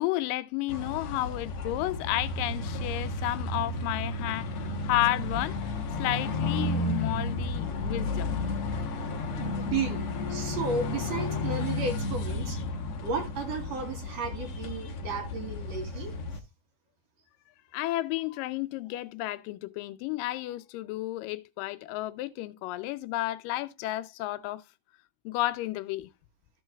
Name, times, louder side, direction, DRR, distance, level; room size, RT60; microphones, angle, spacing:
voice 1, 0.0-5.6 6.0-8.3 9.1-9.2 17.7-24.6 25.3-26.1, left 17 dB, 85° left, 2.3 m, -32 dB
sound 1, 0.7-16.4, left 2 dB, 60° left, 1.6 m, -32 dB
voice 2, 9.4-10.0 10.3-12.6 13.0-16.1, right 4 dB, 60° right, 2.3 m, -33 dB
14.5 x 6.3 x 2.2 m
omnidirectional pair, 3.8 m